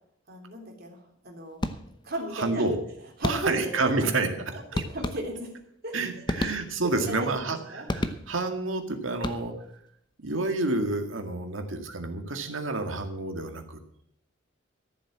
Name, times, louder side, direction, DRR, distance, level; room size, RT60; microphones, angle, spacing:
voice 1, 0.3-1.6 2.0-2.6 3.2-5.5 5.8-5.9 6.4-6.5 6.9-7.9, right 1 dB, 50° right, 0 dB, 3.4 m, -35 dB
sound 1, 1.6-2.2 3.2-3.8 4.7-5.6 6.2-7.0 7.9-8.6 9.1-9.8, left 1 dB, 25° left, 0.8 m, -32 dB
voice 2, 2.3-2.8 3.2-4.3 5.9-9.5 10.2-13.8, right 3 dB, 85° right, 6 dB, 2.0 m, -29 dB
13.5 x 7.5 x 7.4 m, 0.70 s
head